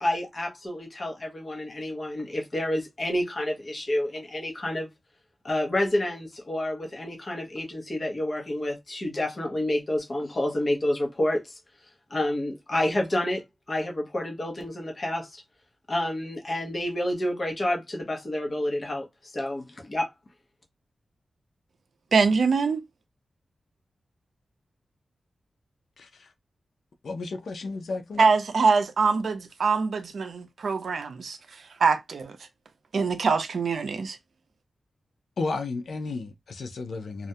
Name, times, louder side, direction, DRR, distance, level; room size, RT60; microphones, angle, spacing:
voice 1, 0.0-4.9 5.4-11.6 12.1-15.4 15.9-20.1, left 1 dB, 30° left, 0.7 m, -29 dB
voice 2, 22.1-22.8 28.2-31.4 31.8-32.4 32.9-34.2, right 4 dB, 65° right, 0.4 m, -23 dB
voice 3, 26.0-26.3 27.0-28.3 35.4-37.3, left 3 dB, 70° left, 0.5 m, -33 dB
2.3 x 2.1 x 2.6 m
wide cardioid pair, 150°, 0 cm